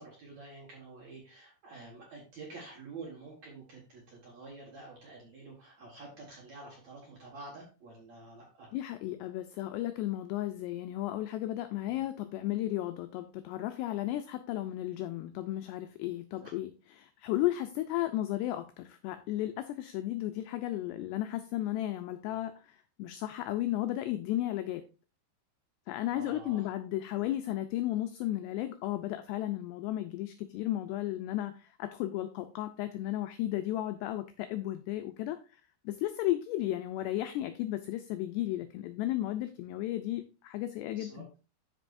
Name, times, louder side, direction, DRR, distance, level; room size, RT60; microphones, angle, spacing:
voice 1, 0.0-8.7 11.8-12.0 16.4-16.5 22.3-22.4 26.1-26.7 40.9-41.4, right 3 dB, 60° right, -2 dB, 1.9 m, -48 dB
voice 2, 8.7-16.7 17.0-24.8 25.9-41.3, left 14 dB, 85° left, 8 dB, 2.4 m, -34 dB
12.5 x 5.2 x 2.6 m, 0.33 s
omnidirectional pair, 5.4 m